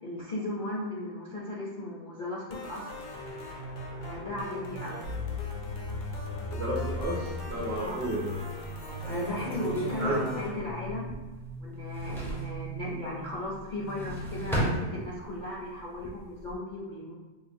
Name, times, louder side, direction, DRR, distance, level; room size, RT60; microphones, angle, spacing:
voice 1, 0.0-2.9 4.0-5.0 7.8-8.1 9.0-11.1 11.6-17.1, left 1 dB, 50° left, -7 dB, 0.5 m, -36 dB
sound 1, 2.5-10.5, left 2 dB, 75° left, 1.1 m, -41 dB
sound 2, 5.0-14.8, equal, 85° right, 1.1 m, -39 dB
voice 2, 6.5-8.4 10.0-10.1, right 1 dB, 55° right, -4 dB, 0.7 m, -32 dB
sound 3, 7.0-7.8 8.3-8.4 8.8-11.5 11.7-12.6 13.7-15.5 15.9-16.5, equal, 5° left, 0.3 m, -35 dB
4.9 x 2.3 x 2.6 m, 1.2 s
omnidirectional pair, 1.5 m